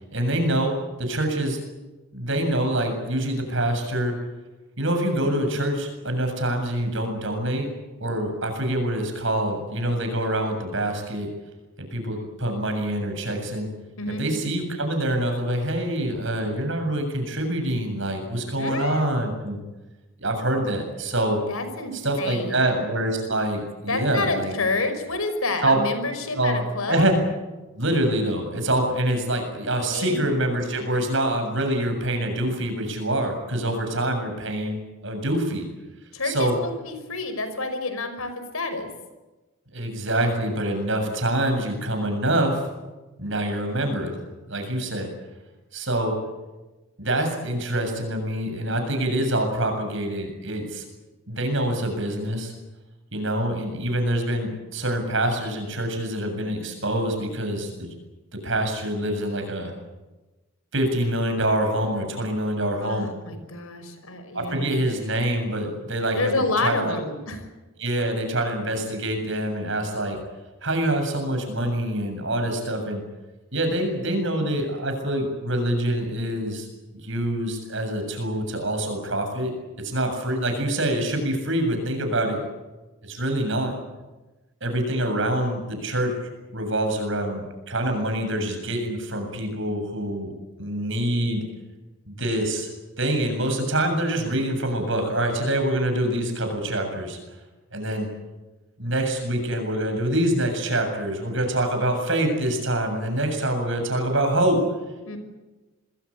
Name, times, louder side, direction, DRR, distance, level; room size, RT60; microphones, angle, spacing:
voice 1, 0.1-1.6 2.1-4.1 4.8-7.7 8.0-11.3 11.8-13.7 14.2-19.6 20.2-21.4 21.9-24.5 25.6-25.8 26.3-26.6 26.9-27.1 27.8-34.8 35.0-35.7 36.2-36.5 39.7-42.6 43.2-44.2 44.5-45.1 45.7-46.2 47.0-50.8 51.3-52.5 53.1-57.9 58.3-59.7 60.7-63.1 64.3-67.0 67.8-70.2 70.6-73.0 73.5-76.7 77.0-79.5 79.8-82.4 83.0-83.7 84.6-90.3 90.6-91.4 92.1-92.7 93.0-97.2 97.7-98.1 98.8-104.6, right 1 dB, 60° right, 5 dB, 7.4 m, -25 dB
voice 2, 18.6-19.0 21.5-22.8 23.9-27.1 29.9-30.2 36.1-38.9 62.8-64.8 66.1-67.4 105.0-105.2, left 3 dB, 80° left, 9 dB, 5.5 m, -29 dB
27.5 x 21.5 x 8.5 m, 1.1 s
head